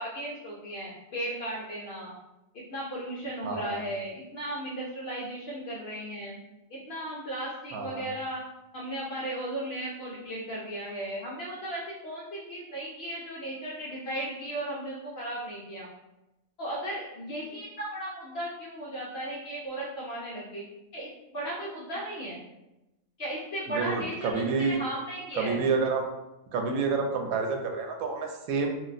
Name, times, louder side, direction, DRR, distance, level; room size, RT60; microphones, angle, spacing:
voice 1, 0.0-2.2 2.5-6.4 6.7-8.4 8.7-15.9 16.6-20.6 20.9-22.4 23.2-24.3 24.6-25.6, right 1 dB, 60° left, -5 dB, 0.7 m, -36 dB
voice 2, 3.4-3.8 7.7-8.1 23.7-24.8 25.4-26.0 26.5-28.7, right 4 dB, 85° right, 3 dB, 1.0 m, -28 dB
2.5 x 2.1 x 3.8 m, 0.96 s
omnidirectional pair, 1.4 m